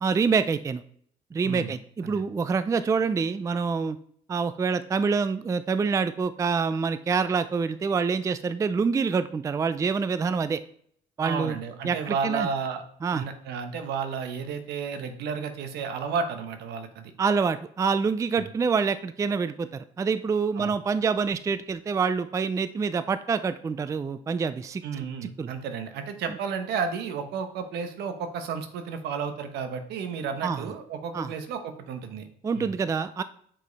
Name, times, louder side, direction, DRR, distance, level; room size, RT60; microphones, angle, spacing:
voice 1, 0.0-0.8 1.3-4.0 4.3-10.6 11.2-11.6 11.8-12.5 13.0-13.2 17.2-25.0 25.4-25.5 30.4-30.6 31.1-31.3 32.4-33.2, right 5 dB, 20° right, 13 dB, 0.3 m, -26 dB
voice 2, 1.4-1.7 2.0-2.2 11.2-12.8 13.1-17.1 18.4-18.5 20.6-20.8 24.8-32.3 32.5-32.8, right 6 dB, 80° right, 7 dB, 1.1 m, -32 dB
7.5 x 5.2 x 4.0 m, 0.64 s
cardioid pair, 110°, 17 cm